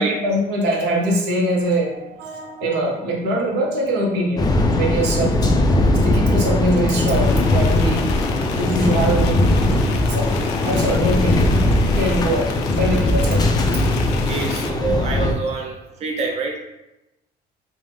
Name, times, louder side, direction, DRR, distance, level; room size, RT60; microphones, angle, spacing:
voice 1, 0.0-4.5 4.7-5.5 6.0-8.2 8.6-9.4 10.1-11.5 11.9-12.5 12.8-13.6, right 1 dB, 80° right, -1 dB, 0.8 m, -22 dB
sound 1, 4.4-15.3, left 1 dB, 25° left, 0.4 m, -19 dB
sound 2, 7.1-14.7, left 6 dB, 85° left, 0.4 m, -33 dB
voice 2, 14.3-15.8 16.0-16.6, right 4 dB, 40° right, 1 dB, 0.5 m, -25 dB
3.2 x 2.0 x 3.2 m, 0.93 s
cardioid pair, 110°, 17 cm